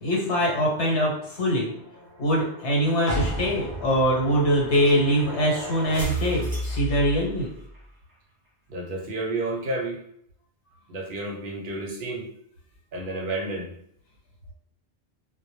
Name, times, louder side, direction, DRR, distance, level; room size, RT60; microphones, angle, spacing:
voice 1, 0.0-1.7 2.2-7.5, equal, 80° left, -3 dB, 1.1 m, -23 dB
sound 1, 1.2-7.8, right 1 dB, 20° right, 0.8 m, -36 dB
sound 2, 3.1-6.8 7.2-7.3, right 1 dB, 40° left, 0.6 m, -35 dB
voice 2, 8.7-10.0 10.9-12.3 12.9-13.7, right 2 dB, 60° right, -1 dB, 0.6 m, -30 dB
2.1 x 2.0 x 2.9 m, 0.69 s
omnidirectional pair, 1.2 m